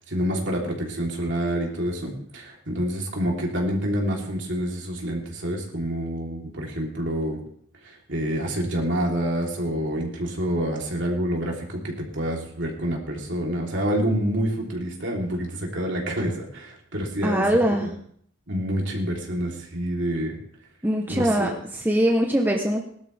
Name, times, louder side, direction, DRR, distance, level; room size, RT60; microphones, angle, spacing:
voice 1, 0.0-7.4 7.8-17.5 17.8-17.9 18.5-20.4 21.1-21.5, equal, 60° right, -1 dB, 3.5 m, -27 dB
voice 2, 17.2-17.9 20.8-22.8, equal, 10° right, 1 dB, 1.0 m, -22 dB
20.0 x 12.0 x 3.5 m, 0.63 s
head